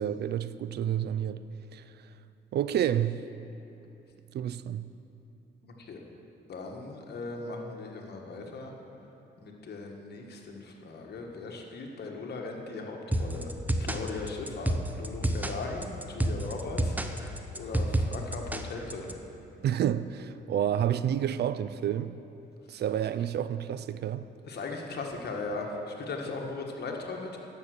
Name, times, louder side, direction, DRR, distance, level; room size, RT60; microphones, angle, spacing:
voice 1, 0.0-1.5 1.7-1.8 2.5-3.2 4.3-4.9 19.6-22.1 22.7-24.3, right 10 dB, 55° right, 0.4 m, -29 dB
voice 2, 6.5-8.7 9.4-13.5 13.8-19.1 22.7-22.8 24.4-27.4, left 3 dB, 55° left, 1.6 m, -38 dB
sound 1, 13.1-19.1, right 1 dB, 10° right, 0.7 m, -30 dB
10.5 x 7.4 x 6.6 m
cardioid pair, 90°, 20 cm